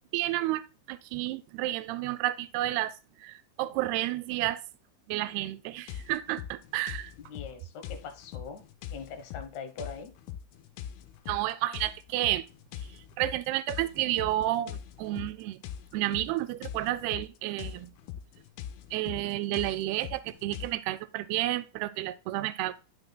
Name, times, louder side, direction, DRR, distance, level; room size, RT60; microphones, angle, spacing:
voice 1, 0.1-0.6 0.9-2.9 3.2-4.6 5.1-7.1 11.3-12.5 13.2-15.6 15.9-17.9 18.9-22.7, right 15 dB, 90° right, 2.5 m, -31 dB
sound 1, 5.9-20.7, left 10 dB, 85° left, 2.6 m, -43 dB
voice 2, 7.3-8.6 8.9-10.1, left 5 dB, 70° left, 1.9 m, -42 dB
10.5 x 6.4 x 2.2 m
omnidirectional pair, 4.4 m